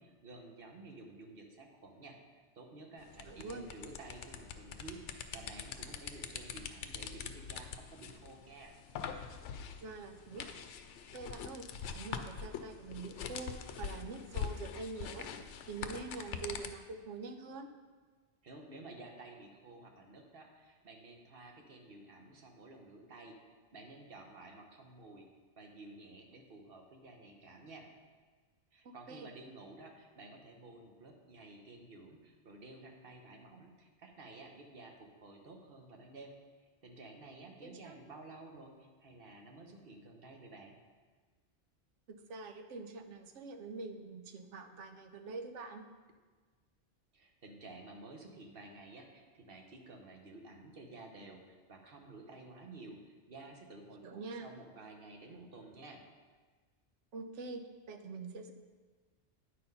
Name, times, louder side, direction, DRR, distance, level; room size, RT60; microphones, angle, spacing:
voice 1, 0.0-2.2 2.5-8.7 18.4-23.4 23.7-25.3 25.6-27.9 28.7-36.3 36.8-40.8 47.1-56.0, right 2 dB, 55° right, 2 dB, 1.1 m, -52 dB
sound 1, 3.0-16.7, left 7 dB, 80° left, 0.9 m, -44 dB
voice 2, 3.3-3.7 9.8-10.5 11.1-11.6 11.9-15.3 15.7-17.7 29.1-29.3 37.6-38.0 42.1-45.8 54.0-54.5 57.1-58.5, right 4 dB, 90° right, 7 dB, 1.0 m, -45 dB
9.5 x 4.3 x 5.4 m, 1.4 s
omnidirectional pair, 1.2 m